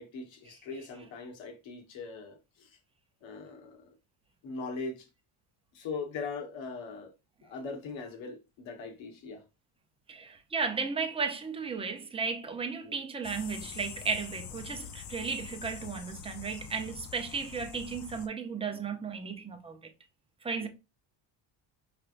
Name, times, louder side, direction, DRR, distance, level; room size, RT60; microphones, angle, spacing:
voice 1, 0.0-2.7 3.2-3.8 4.4-5.1 5.7-7.1 7.4-9.4 12.8-12.9 20.6-20.7, left 4 dB, 70° left, 1.4 m, -40 dB
voice 2, 10.1-19.8 20.4-20.7, right 5 dB, 10° right, 0.6 m, -34 dB
sound 1, 13.2-18.3, left 9 dB, 40° left, 0.5 m, -45 dB
5.4 x 3.4 x 2.5 m
cardioid pair, 135°, 48 cm